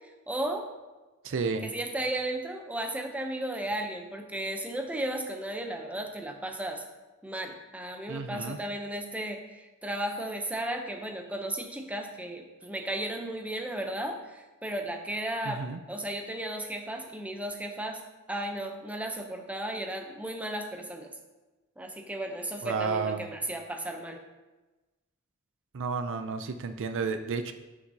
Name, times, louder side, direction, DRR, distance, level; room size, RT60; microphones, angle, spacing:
voice 1, 0.3-0.7 1.6-6.8 7.2-18.0 18.3-21.1 21.8-24.2, right 1 dB, 5° right, 3 dB, 0.7 m, -35 dB
voice 2, 1.2-1.7 8.1-8.6 15.5-15.8 22.6-23.3 25.7-27.5, right 4 dB, 60° right, 8 dB, 0.5 m, -31 dB
9.6 x 5.8 x 2.8 m, 1.2 s
head